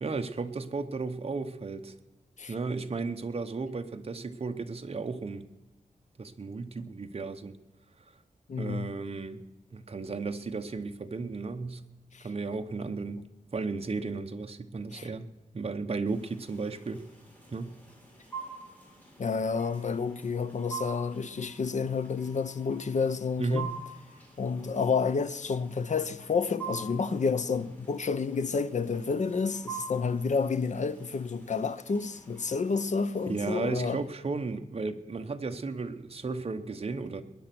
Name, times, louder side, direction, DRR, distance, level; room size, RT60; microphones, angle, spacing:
voice 1, 0.0-1.9 2.5-5.4 6.2-7.6 8.6-9.4 9.7-11.8 12.2-13.2 13.5-15.3 15.5-17.0 17.5-17.7 23.4-23.7 33.3-37.2, right 4 dB, 45° right, 1.1 m, -34 dB
voice 2, 8.5-8.9 12.1-12.3 14.9-15.1 19.2-23.7 24.4-34.0, left 5 dB, 55° left, 0.8 m, -30 dB
sound 1, 16.1-33.5, right 5 dB, 10° left, 4.1 m, -46 dB
20.5 x 10.0 x 6.1 m
wide cardioid pair, 140°, 14 cm